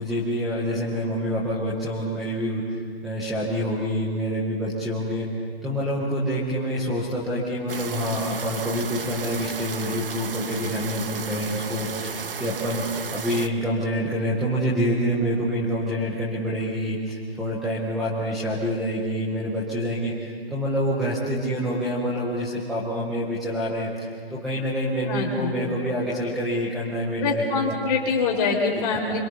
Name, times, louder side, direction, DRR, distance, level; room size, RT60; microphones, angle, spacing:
voice 1, 0.0-5.3 5.6-27.7 28.9-29.2, equal, ahead, -6 dB, 0.6 m, -27 dB
sound 1, 7.7-13.5, right 6 dB, 60° right, 1.3 m, -34 dB
voice 2, 25.0-25.6 27.2-29.2, left 4 dB, 20° left, -1 dB, 3.9 m, -24 dB
26.0 x 25.0 x 6.7 m, 2.1 s
hypercardioid pair, 165°, 31 cm